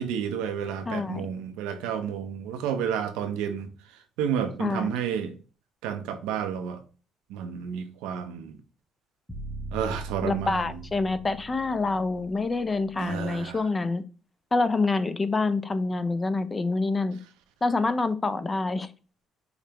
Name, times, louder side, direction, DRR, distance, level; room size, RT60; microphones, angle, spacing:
voice 1, 0.0-3.7 4.2-5.3 5.8-6.8 7.3-8.6 9.7-10.8 13.0-13.6, right 8 dB, 85° right, 0.5 m, -31 dB
voice 2, 0.9-1.3 4.6-4.9 10.2-14.0 14.5-17.2 17.6-18.9, left 3 dB, 25° left, 0.4 m, -26 dB
sound 1, 9.3-13.4, right 2 dB, ahead, 0.8 m, -40 dB
5.0 x 2.1 x 2.9 m
supercardioid pair, 75°, 0 cm